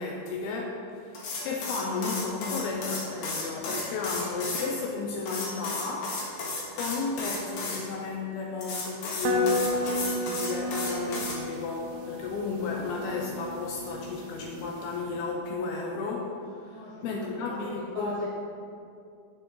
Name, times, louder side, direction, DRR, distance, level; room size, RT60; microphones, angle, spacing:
voice 1, 0.0-6.2 6.7-18.2, left 4 dB, 80° left, -1 dB, 2.3 m, -33 dB
sound 1, 1.1-4.7 5.3-7.8 8.6-11.4, left 3 dB, 60° left, 3.1 m, -34 dB
voice 2, 7.4-7.9 16.7-18.3, right 2 dB, 50° right, -9 dB, 2.0 m, -41 dB
sound 2, 9.2-15.0, equal, 90° right, 3.1 m, -33 dB
9.6 x 7.9 x 3.8 m, 2.5 s
omnidirectional pair, 4.9 m